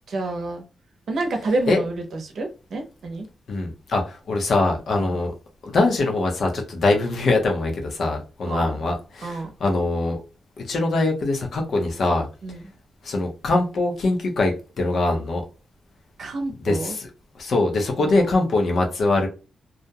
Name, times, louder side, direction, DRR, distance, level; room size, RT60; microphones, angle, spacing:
voice 1, 0.1-0.6 1.1-1.9 2.2-3.3 5.1-5.2 8.5-8.8 9.2-9.5 12.4-12.6 16.2-17.0 18.0-18.4, right 2 dB, 65° right, 0.7 m, -28 dB
voice 2, 3.5-5.3 5.6-10.2 10.6-12.3 13.0-15.4 16.6-17.1 17.4-19.3, left 2 dB, 65° left, 0.7 m, -23 dB
2.4 x 2.1 x 2.7 m
wide cardioid pair, 135°, 0 cm